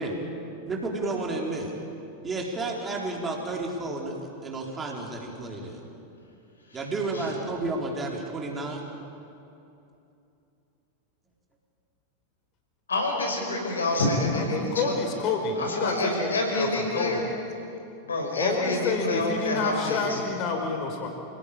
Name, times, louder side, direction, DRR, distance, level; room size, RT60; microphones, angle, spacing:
voice 1, 0.7-1.7 2.2-4.1 4.4-5.9 6.7-8.9, right 2 dB, 20° right, -1 dB, 3.9 m, -31 dB
voice 2, 12.9-14.9 15.6-17.2 18.1-20.2, left 2 dB, 70° left, 1 dB, 5.6 m, -27 dB
voice 3, 14.3-17.2 18.4-21.1, left 4 dB, 35° left, 4 dB, 4.7 m, -29 dB
28.0 x 17.5 x 8.8 m, 2.8 s
figure-of-eight pair, 90°, 0 cm